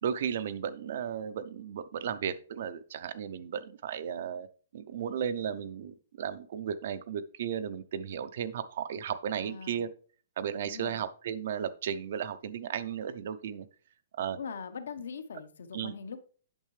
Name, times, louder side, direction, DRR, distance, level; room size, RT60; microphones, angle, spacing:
voice 1, 0.0-4.5 4.7-9.9 10.4-13.7 14.1-14.4 15.7-15.9, right 8 dB, 45° right, 14 dB, 0.5 m, -35 dB
voice 2, 9.4-9.9 10.6-11.0 14.3-16.3, left 5 dB, 75° left, 10 dB, 1.0 m, -41 dB
8.7 x 6.5 x 3.2 m, 0.40 s
hypercardioid pair, 180°, 0 cm